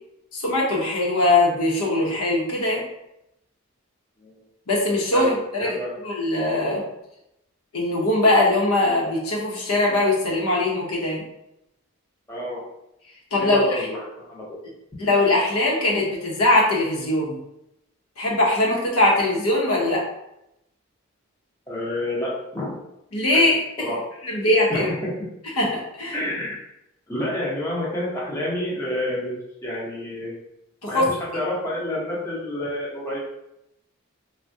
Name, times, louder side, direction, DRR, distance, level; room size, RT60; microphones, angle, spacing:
voice 1, 0.3-2.8 4.7-6.8 7.7-11.2 13.3-13.9 15.0-17.4 18.2-20.0 23.1-23.6 24.2-24.9 25.6-26.2 30.8-31.1, left 2 dB, 85° left, -3 dB, 0.8 m, -21 dB
voice 2, 5.6-5.9 12.3-12.6 13.4-14.4 21.7-22.8 23.3-23.4 23.8-24.0 24.7-24.9 26.1-26.6 27.1-29.4 29.6-30.3 30.9-33.2, left 1 dB, 15° left, -6 dB, 0.7 m, -29 dB
3.4 x 2.2 x 2.6 m, 0.84 s
head